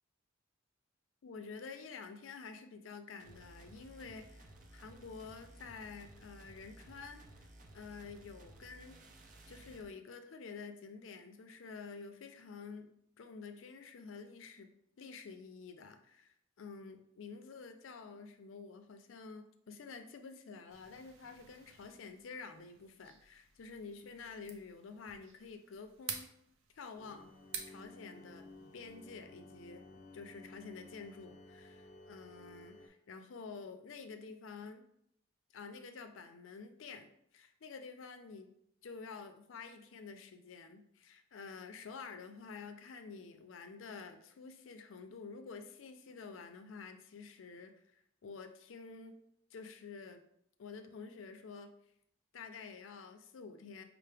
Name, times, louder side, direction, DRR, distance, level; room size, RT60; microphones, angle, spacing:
voice 1, 1.2-7.5 7.7-9.0 9.5-12.9 13.2-26.3 26.7-27.3 27.7-28.4 28.7-29.9 30.1-34.8 35.5-38.5 38.8-49.1 49.5-50.2 50.6-51.7 52.3-53.8, left 5 dB, 85° left, 7 dB, 0.5 m, -49 dB
sound 1, 3.2-9.9, right 1 dB, 45° right, 0.4 m, -57 dB
sound 2, 20.7-29.1, right 6 dB, 90° right, 0.6 m, -51 dB
sound 3, 27.0-32.9, left 2 dB, 40° left, 0.6 m, -55 dB
5.5 x 2.0 x 3.3 m, 0.73 s
head